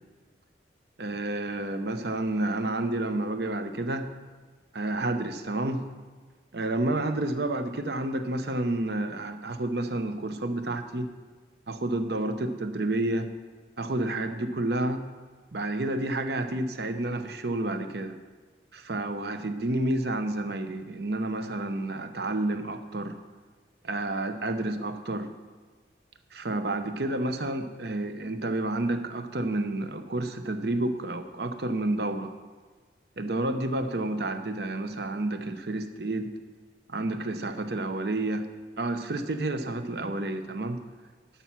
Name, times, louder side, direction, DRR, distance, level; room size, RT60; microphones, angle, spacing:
voice 1, 1.0-4.1 4.7-5.8 6.5-11.1 11.7-13.3 13.8-15.0 15.5-18.2 18.7-23.2 23.8-25.3 26.3-32.3 33.2-36.3 36.9-38.5 38.8-40.8, right 2 dB, 65° right, 8 dB, 0.8 m, -30 dB
11.5 x 5.7 x 5.9 m, 1.5 s
head